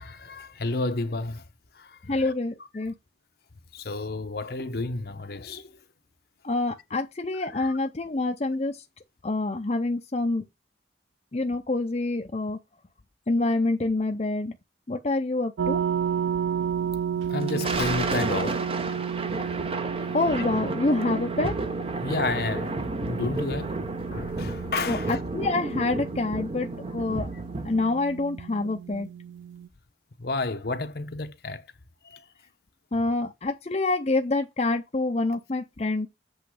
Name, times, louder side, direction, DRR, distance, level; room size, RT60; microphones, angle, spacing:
voice 1, 0.0-1.4 1.7-2.3 3.7-5.7 7.4-7.8 17.3-18.6 22.0-22.8 23.0-23.8 24.1-25.2 28.6-28.7 30.2-31.6 32.0-32.3, left 3 dB, 55° left, 0.9 m, -31 dB
voice 2, 2.1-2.9 6.4-8.8 9.2-10.4 11.3-12.6 13.3-14.5 14.9-15.8 20.1-21.6 24.9-27.3 27.6-29.1 32.9-36.1, left 2 dB, 35° left, 0.6 m, -27 dB
sound 1, 15.6-29.7, right 8 dB, 75° right, 0.4 m, -32 dB
Thunder, 17.2-28.0, right 2 dB, 30° right, 0.7 m, -32 dB
8.0 x 3.1 x 6.3 m
head